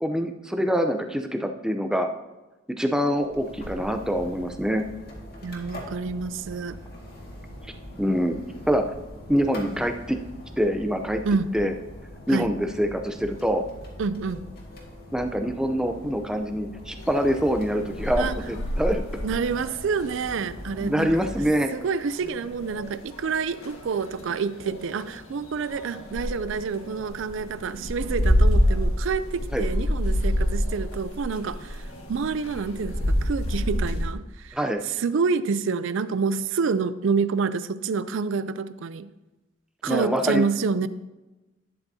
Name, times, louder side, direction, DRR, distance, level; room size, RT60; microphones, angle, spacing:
voice 1, 0.0-2.1 2.8-4.9 8.0-8.9 9.3-10.2 10.6-11.2 11.5-11.7 12.3-13.6 15.1-19.0 20.8-21.7 29.5-29.6 34.5-34.8 39.9-40.4, equal, 5° right, 5 dB, 0.6 m, -25 dB
sound 1, 3.1-21.5, equal, 50° left, 1.9 m, -42 dB
voice 2, 5.4-6.8 11.2-11.5 12.3-12.5 14.0-14.4 18.2-18.4 19.2-21.2 21.7-34.6 34.8-39.1 39.8-40.9, right 5 dB, 65° right, 14 dB, 0.4 m, -28 dB
sound 2, 17.0-34.0, equal, 90° left, 1.6 m, -28 dB
11.5 x 9.7 x 2.8 m, 1.1 s
head